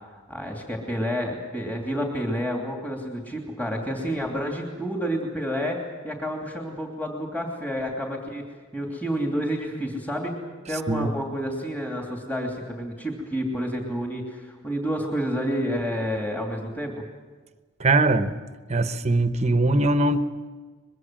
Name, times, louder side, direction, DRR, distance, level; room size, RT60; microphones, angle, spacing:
voice 1, 0.3-10.3 10.7-17.1, equal, 10° left, 0 dB, 2.8 m, -29 dB
voice 2, 17.8-18.4 18.7-20.5, right 2 dB, 30° right, 9 dB, 1.0 m, -21 dB
23.5 x 22.0 x 7.6 m, 1.4 s
head